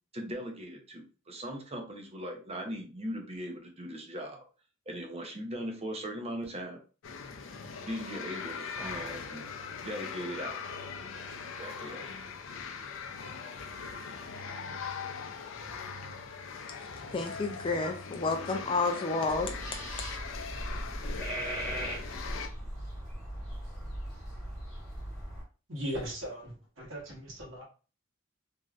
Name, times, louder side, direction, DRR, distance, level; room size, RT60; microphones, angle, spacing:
voice 1, 0.1-4.4 4.9-6.8 7.9-9.5 9.8-10.6 11.6-12.1, equal, 30° right, 0.6 m, -39 dB
sound 1, 7.0-22.5, left 5 dB, 85° left, 0.5 m, -41 dB
voice 2, 17.1-19.5, left 3 dB, 25° left, 0.4 m, -30 dB
sound 2, 19.3-25.4, equal, 5° left, 1.4 m, -38 dB
voice 3, 25.7-27.6, equal, 75° right, 1.2 m, -38 dB
3.2 x 2.6 x 2.3 m
head